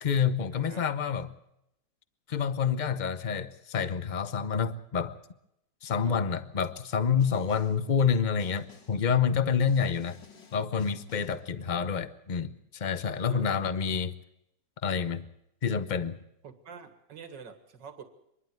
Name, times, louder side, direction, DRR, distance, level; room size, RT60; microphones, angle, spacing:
voice 1, 0.0-1.3 2.3-5.2 5.8-10.2 10.5-14.1 14.8-15.3 15.6-16.2, left 6 dB, 35° left, 0.8 m, -28 dB
voice 2, 0.5-0.9 5.9-6.1 9.7-9.8 11.7-11.9 13.3-13.6 16.4-18.0, right 6 dB, 80° right, 2.4 m, -47 dB
Snare drum, 7.2-7.9 8.4-9.1 9.6-11.5, left 5 dB, 90° left, 3.6 m, -55 dB
26.0 x 11.5 x 9.3 m
omnidirectional pair, 1.9 m